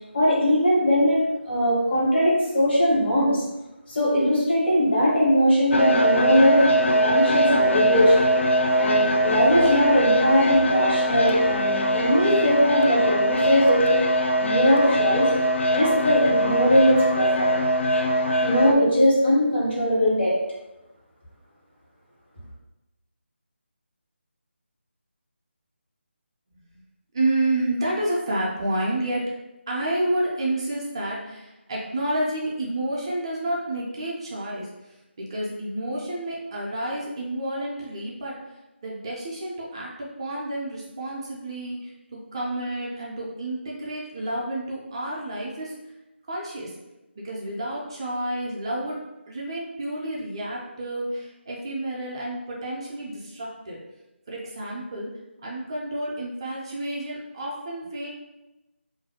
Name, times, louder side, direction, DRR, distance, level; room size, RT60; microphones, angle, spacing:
voice 1, 0.1-3.4 3.9-8.2 8.8-14.0 14.4-15.3 15.7-17.5 18.4-20.4, equal, 60° left, -6 dB, 1.3 m, -20 dB
sound 1, 5.7-18.7, equal, 80° left, 0.4 m, -22 dB
voice 2, 27.1-29.3 29.7-34.7 35.2-38.4 38.8-45.7 46.3-46.7 47.2-53.8 54.3-55.1 55.4-58.1, right 1 dB, 25° right, -4 dB, 0.4 m, -30 dB
2.4 x 2.2 x 2.7 m, 0.99 s
figure-of-eight pair, 160°, 7 cm